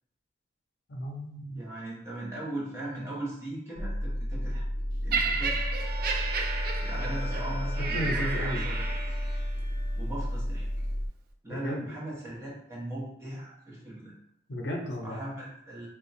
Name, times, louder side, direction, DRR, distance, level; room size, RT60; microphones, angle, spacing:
voice 1, 0.9-1.6 7.9-8.6 11.5-11.9 14.5-15.2, equal, 65° left, 1 dB, 0.6 m, -34 dB
voice 2, 1.5-4.6 5.0-5.7 6.8-9.1 10.0-10.7 11.4-14.1 15.0-15.9, right 1 dB, 15° right, -6 dB, 1.1 m, -39 dB
sound 1, 3.8-11.1, equal, 20° left, 0.3 m, -32 dB
Laughter, 5.1-9.4 10.2-10.3, right 4 dB, 55° right, 0.4 m, -33 dB
sound 2, 5.7-10.9, right 1 dB, 35° right, 1.2 m, -45 dB
2.9 x 2.3 x 4.0 m, 0.74 s
head